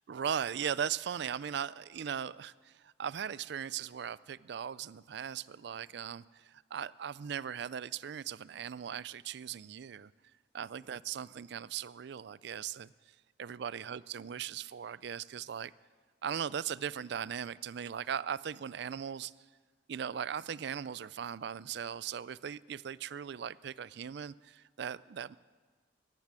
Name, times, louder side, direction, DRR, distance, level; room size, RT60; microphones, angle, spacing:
voice 1, 0.0-10.1 10.5-12.9 13.4-15.7 16.2-19.3 19.9-25.4, right 8 dB, 65° right, 20 dB, 0.4 m, -38 dB
17.0 x 11.0 x 7.5 m, 1.5 s
head